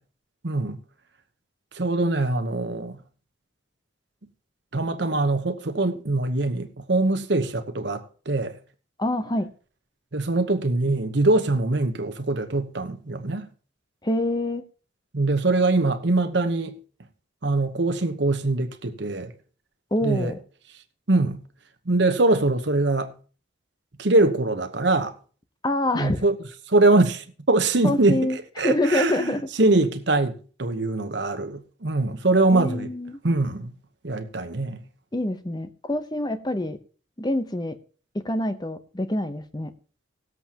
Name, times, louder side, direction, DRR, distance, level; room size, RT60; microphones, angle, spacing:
voice 1, 0.4-0.8 1.7-3.0 4.7-8.6 10.1-13.5 15.1-16.8 17.4-19.3 20.0-20.3 21.1-21.4 21.9-23.1 24.0-25.1 25.9-26.3 26.7-28.3 28.6-32.9 33.2-33.7 34.0-34.8, right 2 dB, 60° right, 1.0 m, -23 dB
voice 2, 9.0-9.5 14.0-14.6 19.9-20.4 25.6-26.2 27.8-28.4 28.6-29.5 32.5-33.2 35.1-36.8 37.2-37.8 38.1-39.7, left 1 dB, 20° left, 0.8 m, -26 dB
18.5 x 8.0 x 2.9 m
head